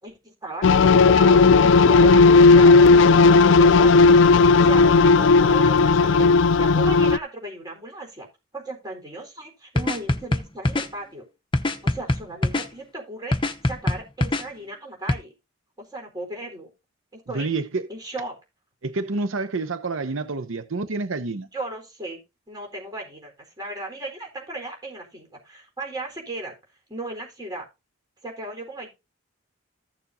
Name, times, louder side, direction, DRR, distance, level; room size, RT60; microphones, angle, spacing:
voice 1, 0.0-4.2 4.5-8.3 8.5-11.3 11.8-15.3 15.8-16.7 17.1-17.5 17.9-18.4 21.5-22.2 22.5-26.5 26.9-27.6 28.2-28.9, right 2 dB, 20° right, 4.1 m, -36 dB
sound 1, 0.6-7.2, left 4 dB, 65° left, 0.4 m, -14 dB
sound 2, 9.8-10.9 11.5-12.7 13.3-14.4 15.1-15.2, left 1 dB, 25° left, 0.8 m, -23 dB
voice 2, 17.3-17.9 18.8-21.5, right 3 dB, 75° right, 0.8 m, -28 dB
15.0 x 7.0 x 2.7 m
head